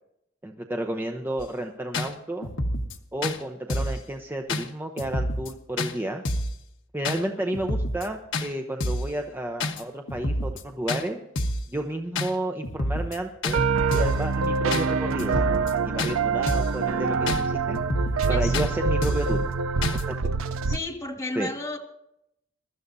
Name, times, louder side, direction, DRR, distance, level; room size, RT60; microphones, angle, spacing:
voice 1, 0.4-2.5 3.1-6.2 6.9-11.2 11.7-13.6 13.9-15.4 15.8-17.8 18.3-19.4 20.1-20.2 21.4-21.5, right 1 dB, 10° right, 4 dB, 0.8 m, -31 dB
sound 1, 1.4-1.5 1.9-2.1 2.4-3.0 3.2-3.4 3.7-4.0 4.5-4.6 5.0-5.5 5.8-5.9 6.2-6.6 7.0-7.2 7.5-8.1 8.3-8.5 8.8-9.1 9.6-9.8 10.1-10.6 10.9-11.0 11.4-11.7 12.2-12.3 12.6-13.2 13.4-13.6 13.9-14.2 14.7-14.9 15.2-15.7 16.0-16.1 16.5-16.8 17.3-17.4 17.7-18.3 18.5-18.7 19.0-19.3 19.8-20.0, left 1 dB, 65° left, 1.2 m, -28 dB
sound 2, 13.5-20.8, right 4 dB, 90° right, 0.5 m, -25 dB
voice 2, 18.3-18.7 20.6-21.8, left 2 dB, 15° left, 0 dB, 1.8 m, -33 dB
23.0 x 12.5 x 2.7 m, 0.80 s
head